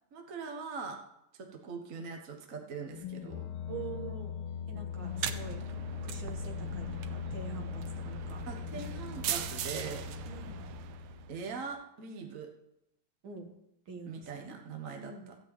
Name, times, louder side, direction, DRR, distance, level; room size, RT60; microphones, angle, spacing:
voice 1, 0.1-1.0 1.4-3.5 8.4-10.1 11.3-12.5 14.0-15.4, right 5 dB, 45° right, 4 dB, 1.4 m, -42 dB
sound 1, 2.8-11.6, left 8 dB, 90° left, 1.6 m, -40 dB
voice 2, 3.7-4.3 4.7-5.6 6.0-8.4 10.3-10.6 13.2-13.5 13.9-14.6 15.0-15.3, right 5 dB, 70° right, 3 dB, 2.5 m, -45 dB
sound 2, 5.0-11.4, right 10 dB, 90° right, 1.6 m, -40 dB
14.5 x 5.3 x 8.8 m, 0.82 s
omnidirectional pair, 2.3 m